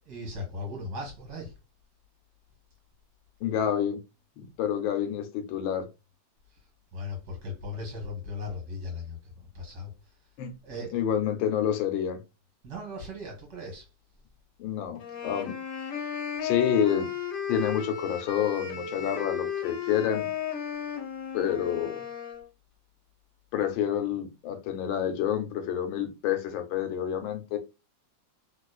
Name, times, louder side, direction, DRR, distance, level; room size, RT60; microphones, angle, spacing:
voice 1, 0.1-1.5 6.9-9.9 10.6-10.9 12.6-13.9, left 2 dB, 55° right, 1.8 m, -37 dB
voice 2, 3.4-4.0 4.4-5.9 10.4-10.5 10.9-12.2 14.6-15.9 16.4-17.1 17.5-20.3 21.3-22.0 23.5-27.6, left 9 dB, 85° left, 1.4 m, -28 dB
sound 1, 15.0-22.4, left 8 dB, 65° left, 1.4 m, -34 dB
3.3 x 3.0 x 2.3 m
omnidirectional pair, 2.1 m